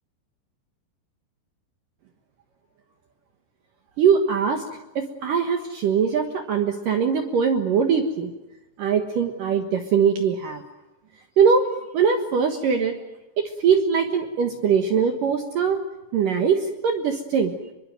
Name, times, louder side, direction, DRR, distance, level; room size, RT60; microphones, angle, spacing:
voice 1, 4.0-4.6 5.0-8.3 8.8-10.6 11.4-11.7 11.9-13.0 13.4-15.8 16.1-17.5, right 6 dB, 60° right, 5 dB, 2.6 m, -21 dB
26.5 x 23.0 x 7.8 m, 1.0 s
omnidirectional pair, 5.1 m